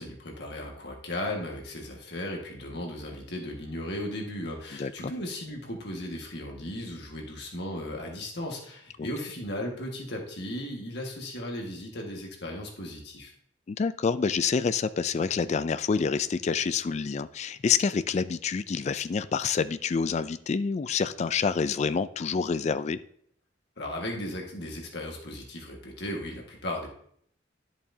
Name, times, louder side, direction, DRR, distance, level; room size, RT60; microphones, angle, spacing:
voice 1, 0.0-13.3 23.8-26.9, left 1 dB, 60° left, 0 dB, 1.7 m, -36 dB
voice 2, 4.8-5.1 9.0-9.1 13.7-23.0, left 5 dB, 35° left, 14 dB, 0.3 m, -27 dB
11.0 x 7.1 x 2.7 m, 0.65 s
head